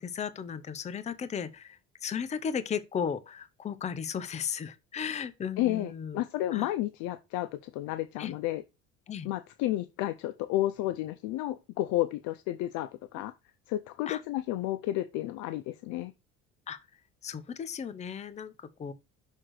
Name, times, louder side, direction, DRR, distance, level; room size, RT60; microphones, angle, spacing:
voice 1, 0.0-6.2 6.5-6.7 8.2-8.4 9.1-9.3 14.1-14.2 16.7-16.8 17.2-18.9, left 7 dB, 25° left, 0.6 m, -35 dB
voice 2, 5.6-8.6 9.2-13.3 13.7-16.1, left 15 dB, 75° left, 0.6 m, -31 dB
6.4 x 3.8 x 6.3 m
cardioid pair, 125°, 30 cm